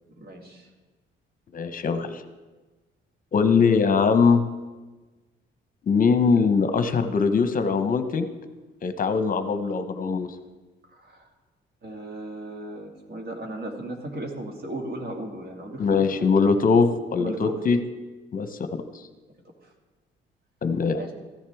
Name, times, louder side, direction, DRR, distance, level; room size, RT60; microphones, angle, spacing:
voice 1, 0.2-0.7 10.9-11.3 11.8-16.3 17.2-17.5 19.6-19.7 21.0-21.1, right 1 dB, 50° right, 2 dB, 2.2 m, -36 dB
voice 2, 1.5-2.2 3.3-4.4 5.9-8.3 8.8-10.3 15.8-17.8 18.3-18.5 20.6-21.0, left 5 dB, 45° left, 9 dB, 0.8 m, -21 dB
14.5 x 10.0 x 3.5 m, 1.2 s
cardioid pair, 90°, 20 cm